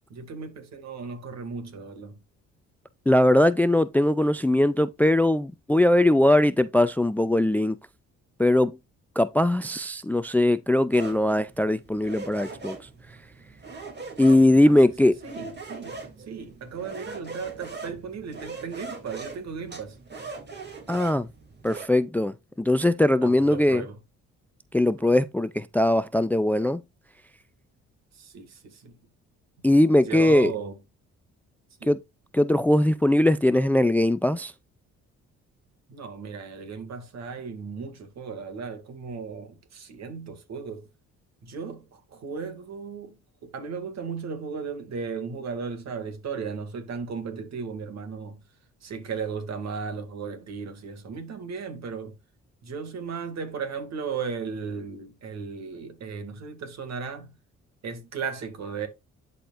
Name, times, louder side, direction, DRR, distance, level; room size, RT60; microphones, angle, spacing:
voice 1, 0.1-2.2 14.7-20.0 23.2-24.0 25.0-25.2 28.1-29.0 30.1-30.8 31.8-31.9 35.9-40.9 41.4-48.4 48.8-52.2 52.6-57.3 57.8-58.9, right 5 dB, 60° right, 2.2 m, -36 dB
voice 2, 3.1-7.8 8.4-8.8 9.2-12.8 14.2-15.2 20.9-21.3 21.6-23.8 24.7-26.8 29.6-30.5 31.9-32.0 32.3-34.5, left 1 dB, 5° left, 0.4 m, -20 dB
sound 1, 10.9-21.9, right 3 dB, 35° right, 2.8 m, -41 dB
11.5 x 4.3 x 2.5 m
cardioid pair, 90°, 30 cm